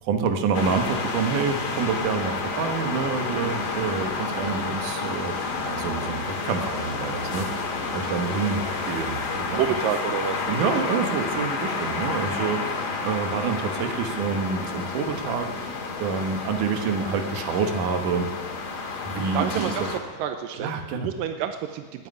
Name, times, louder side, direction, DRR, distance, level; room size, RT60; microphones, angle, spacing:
voice 1, 0.0-9.6 10.5-18.3 19.0-19.9 20.5-21.1, right 5 dB, 70° right, 6 dB, 2.8 m, -28 dB
sound 1, 0.5-20.0, left 4 dB, 60° left, 2.9 m, -30 dB
voice 2, 9.5-10.7 19.3-19.8 20.2-22.1, right 9 dB, 90° right, 7 dB, 2.4 m, -29 dB
13.0 x 11.0 x 9.7 m, 1.3 s
omnidirectional pair, 3.9 m